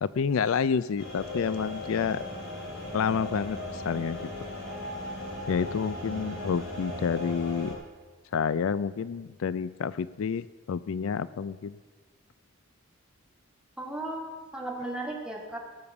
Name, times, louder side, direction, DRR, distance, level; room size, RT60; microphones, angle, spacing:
voice 1, 0.0-2.2 2.9-4.3 5.5-7.8 8.3-11.8, left 6 dB, 75° left, 17 dB, 0.4 m, -29 dB
sound 1, 1.0-7.7, left 1 dB, 50° left, 4.7 m, -37 dB
voice 2, 13.8-15.6, right 1 dB, 5° right, -1 dB, 2.0 m, -35 dB
17.5 x 7.0 x 7.1 m, 1.4 s
head